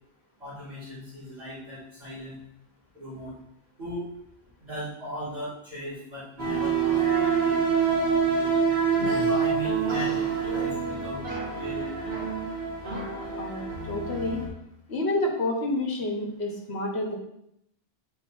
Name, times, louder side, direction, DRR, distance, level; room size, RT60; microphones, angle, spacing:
voice 1, 0.4-2.4 2.9-3.3 3.8-4.1 4.6-8.5 9.2-11.2 11.5-12.3, equal, 40° right, -9 dB, 2.7 m, -38 dB
sound 1, 6.4-14.5, right 6 dB, 70° right, 2.0 m, -26 dB
voice 2, 13.4-14.4 14.9-17.1, left 2 dB, 80° left, 0 dB, 1.5 m, -29 dB
8.1 x 4.7 x 2.6 m, 0.77 s
omnidirectional pair, 1.1 m